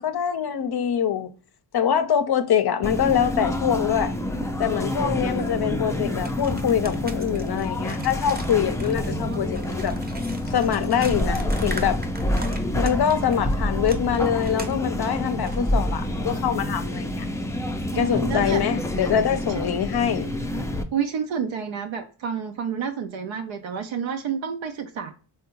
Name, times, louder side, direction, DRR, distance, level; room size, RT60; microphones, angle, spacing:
voice 1, 0.0-1.3 1.7-4.2 4.6-10.0 10.5-12.0 12.8-17.3 17.9-20.3, left 8 dB, 50° left, 0.6 m, -24 dB
sound 1, 2.8-20.8, left 1 dB, 5° left, 0.4 m, -27 dB
sound 2, 6.2-13.4 13.8-15.6, right 2 dB, 20° right, 0.7 m, -40 dB
voice 2, 17.9-18.6 20.9-25.1, right 7 dB, 70° right, 0.6 m, -29 dB
3.5 x 2.2 x 2.8 m
cardioid pair, 50°, 49 cm